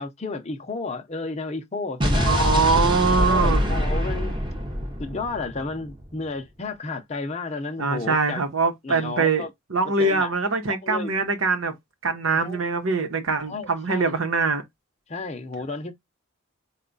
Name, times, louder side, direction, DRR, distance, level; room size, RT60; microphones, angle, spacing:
voice 1, 0.0-2.5 3.2-4.4 5.0-8.4 8.8-9.5 10.0-10.4 10.7-11.1 12.3-12.6 13.5-14.2 15.1-15.9, left 3 dB, 30° left, 0.6 m, -32 dB
Explosion, 2.0-6.1, equal, 25° right, 0.8 m, -24 dB
voice 2, 2.3-3.6 7.8-11.7 12.0-14.6, right 4 dB, 80° right, 0.9 m, -23 dB
4.5 x 2.3 x 3.8 m
head